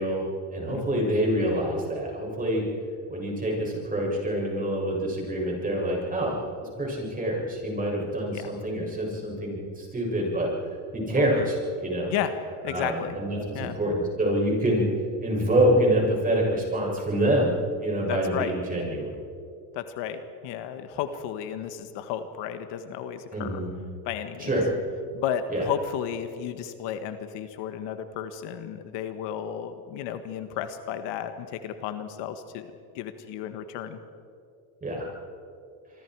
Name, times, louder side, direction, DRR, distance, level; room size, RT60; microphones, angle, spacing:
voice 1, 0.0-2.6 3.1-10.5 10.9-12.1 12.7-14.9 15.2-17.5 17.8-19.2 23.3-23.7 24.4-24.6 25.5-25.7 34.8-35.1, right 1 dB, 20° right, -2 dB, 7.4 m, -26 dB
voice 2, 0.7-1.0 8.3-8.5 11.2-11.5 12.1-12.3 12.6-13.1 13.5-13.7 18.1-18.5 19.7-23.6 24.0-24.5 25.1-32.7 32.9-34.0, left 9 dB, 65° left, 9 dB, 1.6 m, -33 dB
26.0 x 24.0 x 4.8 m, 2.4 s
supercardioid pair, 125°, 45 cm